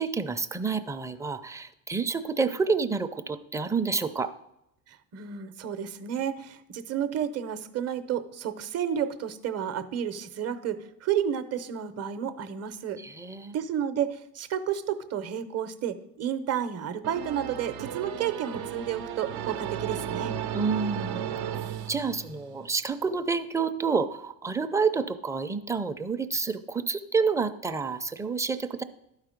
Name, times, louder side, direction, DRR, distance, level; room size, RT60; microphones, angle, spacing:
voice 1, 0.0-4.3 13.0-13.6 20.5-21.3 21.9-28.8, right 5 dB, 10° right, 9 dB, 0.5 m, -29 dB
voice 2, 4.9-13.0 13.5-20.3, right 9 dB, 40° right, 11 dB, 0.8 m, -31 dB
sound 1, 17.0-22.7, right 9 dB, 70° right, 0.7 m, -35 dB
12.0 x 4.8 x 5.1 m, 0.84 s
supercardioid pair, 85°, 40 cm